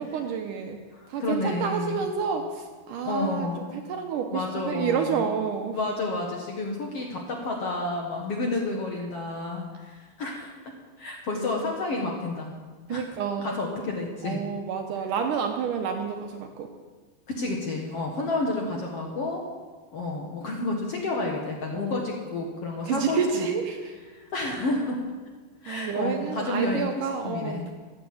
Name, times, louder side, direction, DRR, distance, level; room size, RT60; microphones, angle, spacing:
voice 1, 0.0-0.8 1.1-3.5 3.7-5.8 12.9-13.6 14.2-16.7 21.7-22.1 22.9-23.8 25.7-27.7, right 6 dB, 70° right, 5 dB, 2.2 m, -29 dB
voice 2, 0.9-2.1 3.0-3.7 4.3-5.3 5.7-10.5 11.0-12.5 12.9-13.0 13.4-14.4 17.3-19.4 19.9-23.5 24.1-25.0 25.6-26.9 27.2-27.7, left 2 dB, 55° left, 0 dB, 1.9 m, -30 dB
14.5 x 9.7 x 7.7 m, 1.4 s
omnidirectional pair, 4.4 m